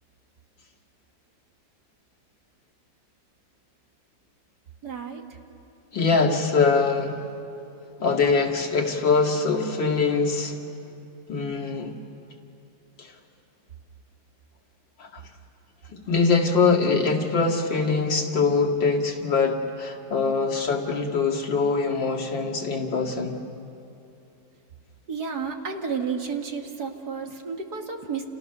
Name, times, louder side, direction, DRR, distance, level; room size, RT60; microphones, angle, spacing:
voice 1, 4.8-5.4 25.1-28.2, right 5 dB, 60° right, 3 dB, 2.3 m, -31 dB
voice 2, 5.9-7.2 8.0-10.6 11.3-12.0 13.0-13.1 15.0-15.2 15.9-23.4, left 4 dB, 80° left, 0 dB, 2.8 m, -23 dB
29.5 x 29.5 x 6.8 m, 2.7 s
omnidirectional pair, 2.0 m